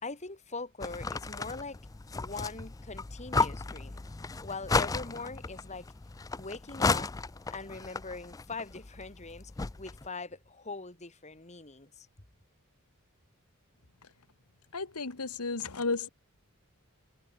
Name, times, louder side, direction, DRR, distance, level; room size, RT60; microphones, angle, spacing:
voice 1, 0.0-1.8 2.1-4.2 4.4-5.9 6.4-7.1 7.5-9.5 9.8-12.1, left 3 dB, 30° left, 2.7 m, -42 dB
sound 1, 0.8-10.1, left 4 dB, 15° left, 0.4 m, -34 dB
voice 2, 14.7-16.1, left 3 dB, 90° left, 1.8 m, -33 dB
head